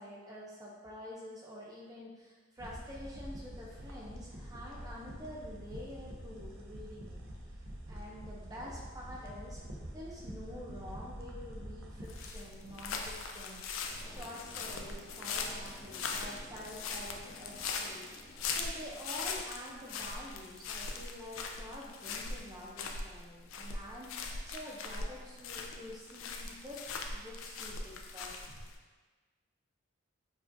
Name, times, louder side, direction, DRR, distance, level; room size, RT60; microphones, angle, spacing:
voice 1, 0.0-7.2 7.5-7.6 7.9-9.6 9.9-28.5, left 1 dB, 20° right, -4 dB, 0.5 m, -48 dB
sound 1, 2.6-12.3, equal, 70° right, 0.5 m, -46 dB
sound 2, 12.0-28.8, left 4 dB, 75° left, 0.3 m, -40 dB
sound 3, 13.8-20.2, equal, 25° left, 0.8 m, -55 dB
4.7 x 2.4 x 2.6 m, 1.4 s
head